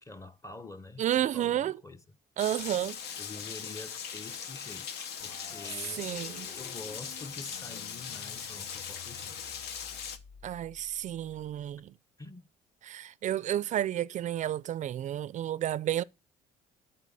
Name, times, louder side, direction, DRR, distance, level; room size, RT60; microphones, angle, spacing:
voice 1, 0.0-2.0 3.2-6.1 6.6-9.6 12.2-12.5, left 2 dB, 20° left, 0.7 m, -46 dB
voice 2, 1.0-1.8 2.4-3.0 6.0-6.5 10.4-11.9 12.8-16.0, right 11 dB, 45° right, 0.4 m, -31 dB
Rain, 2.4-10.2, left 7 dB, 80° left, 0.9 m, -40 dB
sound 1, 5.2-11.8, left 6 dB, 45° left, 0.8 m, -53 dB
12.0 x 4.7 x 4.0 m
cardioid pair, 110°, 17 cm